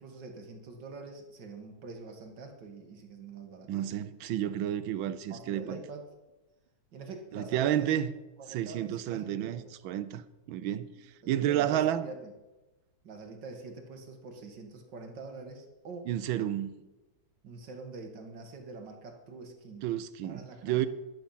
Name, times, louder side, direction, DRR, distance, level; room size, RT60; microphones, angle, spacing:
voice 1, 0.0-4.1 5.3-6.0 6.9-8.0 8.4-9.7 11.2-12.3 13.0-16.1 17.4-19.9 20.2-20.9, right 3 dB, 60° right, 2.2 m, -45 dB
voice 2, 3.7-5.8 7.3-8.1 8.5-12.1 16.1-16.9 19.8-20.9, right 11 dB, 80° right, 1.4 m, -31 dB
10.5 x 10.0 x 5.7 m
omnidirectional pair, 2.2 m